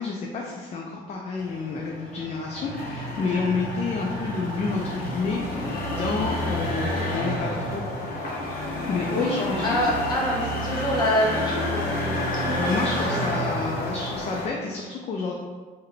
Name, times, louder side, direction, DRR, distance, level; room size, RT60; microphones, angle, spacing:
voice 1, 0.0-7.8 8.9-9.8 12.5-15.3, left 4 dB, 40° left, -1 dB, 0.4 m, -29 dB
sound 1, 1.4-14.5, left 1 dB, 60° left, 0.8 m, -30 dB
voice 2, 9.6-13.2, equal, 25° left, -6 dB, 1.5 m, -27 dB
3.6 x 2.2 x 3.3 m, 1.4 s
cardioid pair, 110°, 17 cm